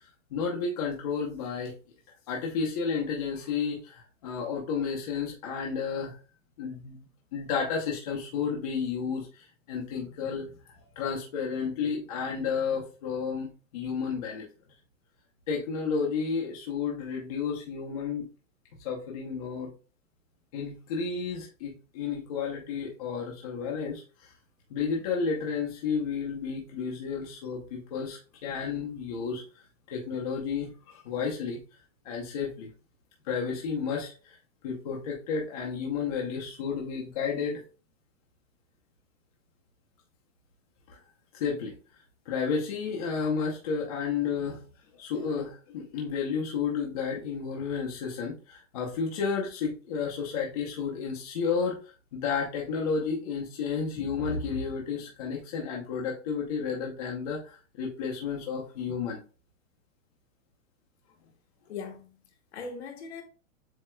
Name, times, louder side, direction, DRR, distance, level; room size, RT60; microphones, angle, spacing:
voice 1, 0.3-1.7 2.3-6.2 6.6-10.5 11.0-14.5 15.5-18.3 18.8-19.7 20.5-24.3 24.7-31.6 32.0-32.7 33.2-34.3 34.6-37.6 40.9-41.0 41.3-41.7 42.3-44.6 45.0-59.2, left 5 dB, 30° left, 0.8 m, -32 dB
voice 2, 61.7-63.2, left 5 dB, 55° left, 1.2 m, -40 dB
7.5 x 2.9 x 2.2 m
supercardioid pair, 180°, 40 cm